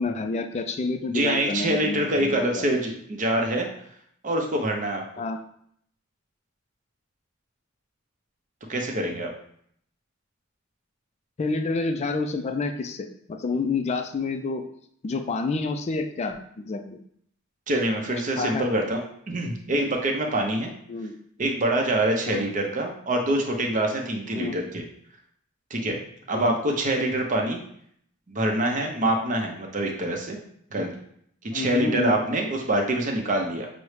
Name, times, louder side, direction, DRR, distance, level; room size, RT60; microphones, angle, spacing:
voice 1, 0.0-2.7 5.2-5.4 11.4-14.7 15.0-17.0 18.4-18.6 20.9-21.2 22.2-22.4 24.3-24.6 26.3-26.6 31.5-32.2, left 3 dB, 30° left, 7 dB, 0.3 m, -29 dB
voice 2, 1.1-3.7 4.2-5.0 8.7-9.3 17.7-19.0 19.3-20.7 21.4-24.8 25.7-26.0 26.3-27.6 28.3-30.4 30.7-31.0 31.5-33.7, right 1 dB, 40° right, 2 dB, 0.7 m, -25 dB
6.0 x 2.1 x 3.2 m, 0.67 s
head